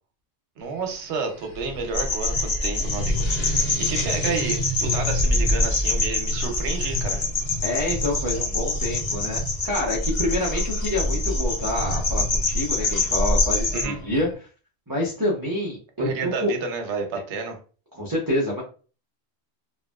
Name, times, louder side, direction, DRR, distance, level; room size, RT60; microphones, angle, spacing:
sound 1, 0.6-14.3, left 1 dB, 65° left, 1.3 m, -34 dB
voice 1, 0.6-7.3 13.7-14.0 16.0-17.6, right 4 dB, 90° right, 5 dB, 1.0 m, -30 dB
sound 2, 1.9-13.8, left 2 dB, 45° left, 0.7 m, -25 dB
voice 2, 7.6-14.3 14.9-16.5 18.0-18.6, left 1 dB, 20° right, -5 dB, 0.7 m, -27 dB
2.9 x 2.6 x 2.2 m, 0.37 s
omnidirectional pair, 1.1 m